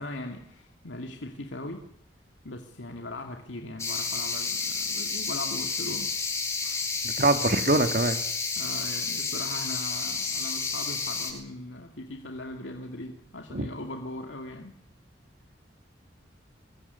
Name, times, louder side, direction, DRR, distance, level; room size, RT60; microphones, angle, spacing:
voice 1, 0.0-1.9 2.4-6.3 6.6-6.9 8.6-14.7, left 2 dB, 90° left, 3 dB, 2.5 m, -39 dB
sound 1, 3.8-11.3, left 4 dB, 15° left, 7.6 m, -30 dB
voice 2, 7.0-8.2 13.5-13.7, right 2 dB, 50° right, 8 dB, 2.3 m, -23 dB
23.0 x 22.0 x 9.6 m, 0.74 s
head